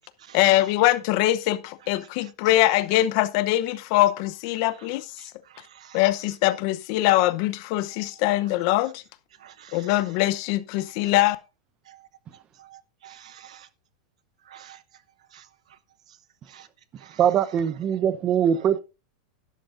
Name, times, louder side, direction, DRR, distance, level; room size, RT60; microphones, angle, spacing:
voice 1, 0.3-5.1 5.9-9.0 9.7-11.4, left 16 dB, 50° left, 0.8 m, -22 dB
voice 2, 5.2-6.0 9.4-9.9 12.6-13.7 14.5-14.8 15.3-15.5 16.5-16.7 17.0-17.2, right 10 dB, 90° right, 0.9 m, -49 dB
voice 3, 17.2-18.8, right 9 dB, 30° right, 0.9 m, -22 dB
12.5 x 11.5 x 2.6 m
supercardioid pair, 140°, 3 cm